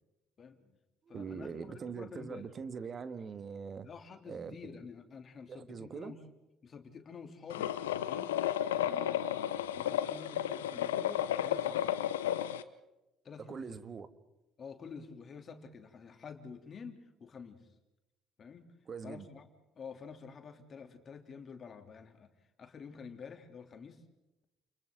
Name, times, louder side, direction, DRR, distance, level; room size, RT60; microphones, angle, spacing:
voice 1, 0.4-0.8 1.1-2.5 3.8-6.2 6.6-7.8 8.1-8.3 8.7-11.9 13.2-13.8 14.6-17.7 18.4-18.7 19.0-19.5 19.7-22.3 22.6-24.0, left 5 dB, 45° left, 3.3 m, -49 dB
voice 2, 1.1-3.9 4.3-4.5 5.5-6.1 13.4-14.1 18.9-19.3, right 6 dB, 45° right, 1.8 m, -42 dB
sound 1, 7.5-12.6, left 11 dB, 85° left, 0.8 m, -33 dB
30.0 x 29.5 x 4.0 m
hypercardioid pair, 55°, 0 cm